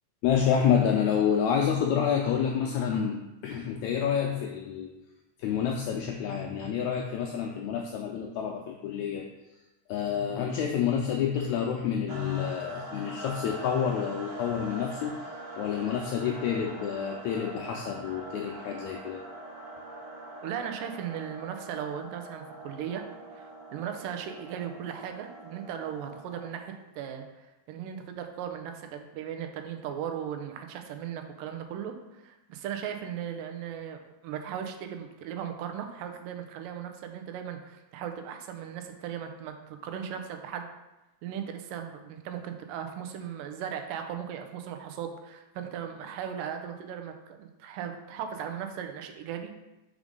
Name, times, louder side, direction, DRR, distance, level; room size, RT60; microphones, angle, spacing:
voice 1, 0.2-3.2 3.4-4.9 5.4-9.3 9.9-15.2 15.6-19.2, left 8 dB, 85° left, 1 dB, 1.6 m, -28 dB
sound 1, 12.1-26.8, right 1 dB, 40° right, 2.0 m, -43 dB
voice 2, 20.4-23.1 23.3-40.7 41.2-49.5, right 8 dB, 85° right, 5 dB, 2.3 m, -37 dB
4.9 x 4.9 x 5.2 m, 1.0 s
omnidirectional pair, 3.8 m